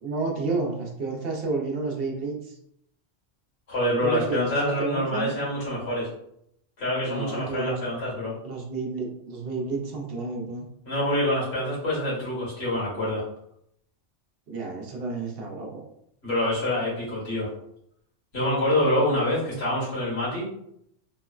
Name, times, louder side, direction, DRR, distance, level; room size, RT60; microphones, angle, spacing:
voice 1, 0.0-2.6 4.0-5.3 7.0-7.8 8.4-10.7 14.5-15.8 19.5-19.6, right 3 dB, 60° right, 0 dB, 0.8 m, -31 dB
voice 2, 3.7-6.1 6.8-8.4 10.8-13.2 16.2-17.5 18.3-20.5, left 1 dB, 60° left, -7 dB, 1.7 m, -26 dB
3.5 x 2.0 x 2.3 m, 0.74 s
omnidirectional pair, 1.2 m